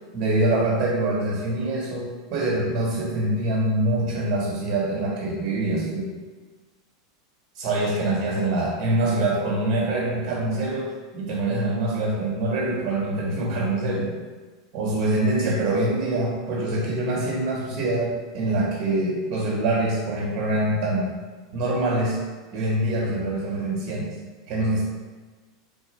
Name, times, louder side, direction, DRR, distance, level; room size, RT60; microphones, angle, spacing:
voice 1, 0.1-6.1 7.5-14.1 14.7-21.1 21.5-22.2 22.5-24.2 24.5-24.9, right 2 dB, 50° right, -3 dB, 1.0 m, -24 dB
4.0 x 2.3 x 3.0 m, 1.4 s
hypercardioid pair, 115°, 2 cm